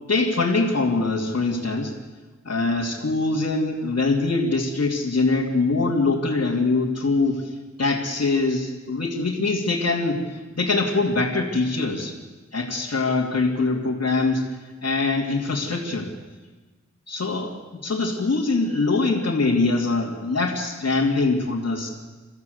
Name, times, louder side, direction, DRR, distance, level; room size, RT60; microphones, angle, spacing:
voice 1, 0.1-1.9 2.4-12.1 12.5-14.5 14.8-16.1 17.1-17.6 17.8-21.9, left 3 dB, 60° left, -5 dB, 2.9 m, -23 dB
30.0 x 14.0 x 8.1 m, 1.3 s
wide cardioid pair, 90°, 29 cm